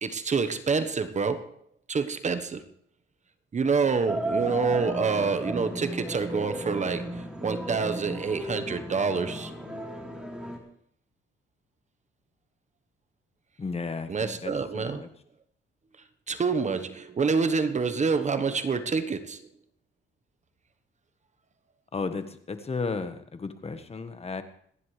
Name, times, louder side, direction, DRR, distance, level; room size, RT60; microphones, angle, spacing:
voice 1, 0.0-1.5 1.9-2.6 3.5-9.5 14.1-15.1 16.3-19.5, right 5 dB, 35° right, 10 dB, 1.2 m, -27 dB
sound 1, 4.1-10.6, right 1 dB, 5° right, 3.6 m, -34 dB
voice 2, 13.6-15.1 21.9-24.4, left 4 dB, 30° left, 9 dB, 1.4 m, -34 dB
26.0 x 11.0 x 3.3 m, 0.63 s
cardioid pair, 90°, 20 cm